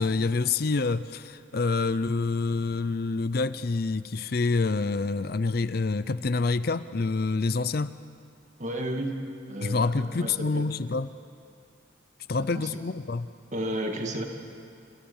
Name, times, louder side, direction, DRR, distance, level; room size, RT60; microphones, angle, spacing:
voice 1, 0.0-8.0 9.6-11.1 12.3-13.3, left 3 dB, 50° left, 14 dB, 0.5 m, -27 dB
voice 2, 8.6-9.2 9.5-10.7 12.4-12.7 13.5-14.2, right 1 dB, 35° right, 3 dB, 2.2 m, -32 dB
27.5 x 22.5 x 7.2 m, 2.4 s
head